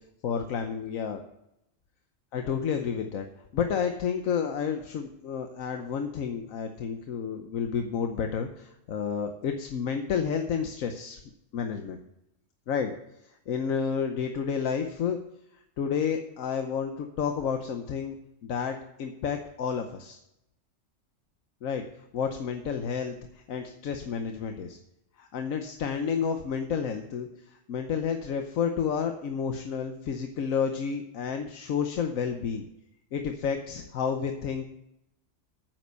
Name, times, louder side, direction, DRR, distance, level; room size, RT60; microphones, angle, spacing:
voice 1, 0.2-1.2 2.3-3.3 3.5-11.2 11.5-12.0 12.7-12.9 13.5-15.2 15.8-18.2 18.4-20.2 21.6-21.8 22.1-24.8 25.2-32.7 33.1-34.7, left 7 dB, 90° left, 6 dB, 1.3 m, -30 dB
9.6 x 7.7 x 6.7 m, 0.82 s
omnidirectional pair, 1.4 m